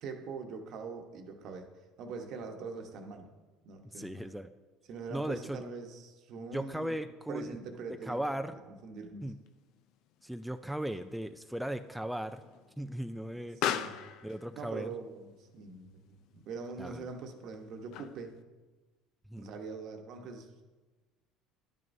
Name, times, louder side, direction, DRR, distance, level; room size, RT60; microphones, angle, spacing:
voice 1, 0.0-1.7 2.0-3.3 3.6-4.2 4.9-7.0 7.3-9.3 13.5-14.0 14.5-18.4 19.4-20.5, right 4 dB, 60° right, 4 dB, 1.1 m, -43 dB
voice 2, 3.8-4.5 5.1-5.6 6.4-7.6 8.1-8.5 9.2-9.4 10.2-12.4 12.8-13.6 14.2-14.9 16.8-16.9 19.3-19.5, right 1 dB, ahead, 8 dB, 0.3 m, -37 dB
Explosion, 9.4-18.4, left 10 dB, 70° left, 0.4 m, -42 dB
10.5 x 9.2 x 2.7 m, 1.2 s
supercardioid pair, 90°, 0 cm